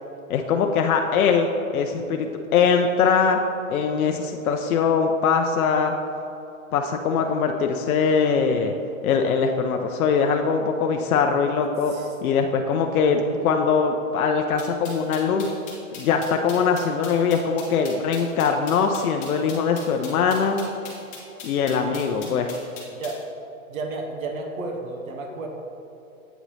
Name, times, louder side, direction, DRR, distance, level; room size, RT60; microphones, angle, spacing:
voice 1, 0.3-3.4 3.7-5.9 6.7-8.7 9.0-11.9 12.2-15.5 15.9-20.6 21.4-22.5, left 6 dB, 80° left, 4 dB, 0.6 m, -22 dB
voice 2, 13.1-13.4 22.9-23.2 23.7-25.5, right 3 dB, 70° right, 2 dB, 0.9 m, -32 dB
sound 1, 14.6-23.2, left 5 dB, 20° left, 0.8 m, -41 dB
8.0 x 3.0 x 4.1 m, 2.8 s
hypercardioid pair, 155°, 42 cm